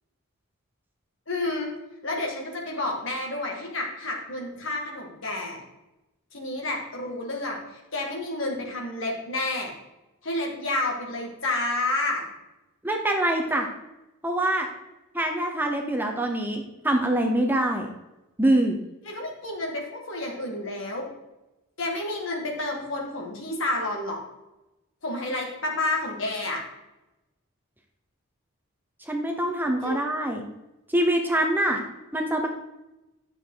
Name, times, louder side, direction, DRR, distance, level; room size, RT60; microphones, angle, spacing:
voice 1, 1.3-1.7 2.0-5.6 6.3-9.7 10.2-12.3 19.1-21.1 21.8-24.2 25.0-26.6 29.8-30.0, left 2 dB, 60° left, 0 dB, 2.2 m, -30 dB
voice 2, 12.8-13.7 14.2-14.7 15.1-17.9 18.4-18.8 29.1-30.4 30.9-31.8 32.1-32.5, right 1 dB, 10° right, 2 dB, 0.8 m, -24 dB
10.5 x 6.9 x 3.9 m, 0.97 s
head